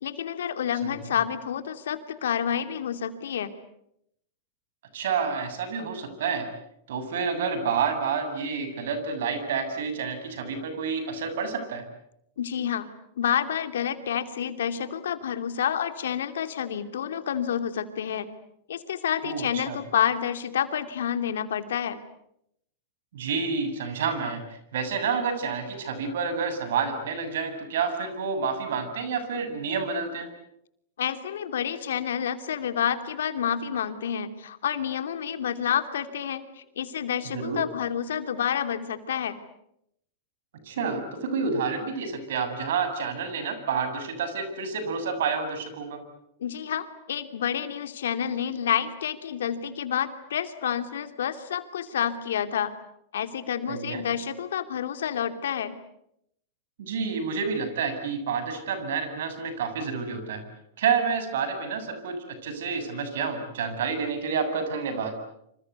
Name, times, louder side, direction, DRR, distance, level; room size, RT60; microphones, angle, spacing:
voice 1, 0.0-3.5 12.4-12.9 13.2-18.3 18.7-22.0 31.0-39.4 46.4-52.7 53.1-55.8, left 9 dB, 80° left, 9 dB, 2.7 m, -29 dB
voice 2, 4.9-6.5 6.9-11.8 19.2-19.8 23.1-30.3 37.3-37.6 40.7-46.0 53.7-54.0 56.8-60.4 60.8-62.2 62.4-65.1, right 5 dB, 75° right, 9 dB, 7.4 m, -29 dB
27.0 x 26.5 x 8.2 m, 0.78 s
hypercardioid pair, 115°, 0 cm